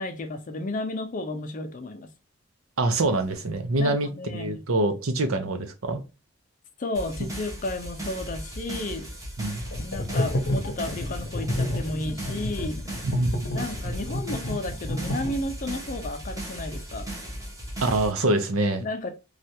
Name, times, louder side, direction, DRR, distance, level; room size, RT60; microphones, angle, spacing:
voice 1, 0.0-2.1 3.8-4.6 6.8-9.1 9.7-12.8 13.5-17.1 18.8-19.1, left 2 dB, 40° left, 0.4 m, -33 dB
voice 2, 2.8-6.0 7.2-7.3 9.4-9.6 13.0-13.5 13.8-13.9 17.8-18.9, right 2 dB, 80° right, 0.7 m, -25 dB
sound 1, 6.9-18.1, right 1 dB, 15° right, 1.1 m, -37 dB
sound 2, 9.7-15.7, left 1 dB, 70° left, 0.7 m, -30 dB
3.2 x 2.4 x 2.7 m
head